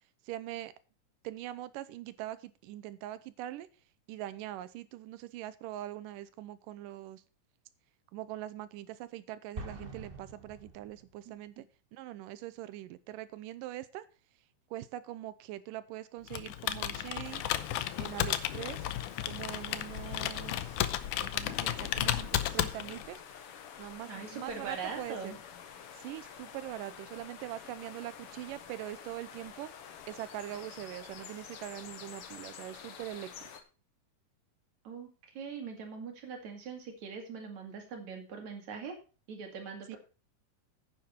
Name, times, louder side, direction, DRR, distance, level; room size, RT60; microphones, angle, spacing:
voice 1, 0.3-0.7 1.2-3.7 4.1-7.2 8.1-11.7 11.9-14.1 14.7-17.5 18.0-18.9 19.3-20.8 21.2-23.2 23.8-25.4 25.9-29.7 30.1-33.5 39.9-40.0, right 14 dB, 90° right, 16 dB, 2.4 m, -42 dB
Explosion, 9.5-11.4, right 2 dB, 35° right, 0.8 m, -45 dB
Computer keyboard, 16.3-23.2, left 12 dB, 75° left, 2.1 m, -33 dB
sound 1, 17.2-33.6, left 7 dB, 55° left, 1.8 m, -48 dB
voice 2, 24.1-25.4 34.8-39.0 39.3-40.0, right 5 dB, 60° right, 4 dB, 3.7 m, -42 dB
10.5 x 9.3 x 4.3 m, 0.34 s
omnidirectional pair, 3.7 m